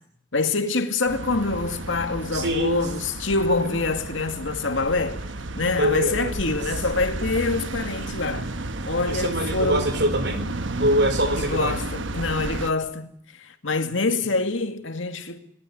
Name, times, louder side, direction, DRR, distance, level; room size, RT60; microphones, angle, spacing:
voice 1, 0.3-5.2 5.6-8.5 8.9-9.9 11.3-13.1 13.4-15.4, left 3 dB, 80° left, 2.2 m, -25 dB
sound 1, 1.1-12.7, right 2 dB, 75° right, 1.2 m, -32 dB
voice 2, 2.3-2.8 5.8-6.4 9.1-10.5 10.8-11.8, right 1 dB, 60° right, 3.9 m, -24 dB
26.5 x 19.0 x 9.5 m
head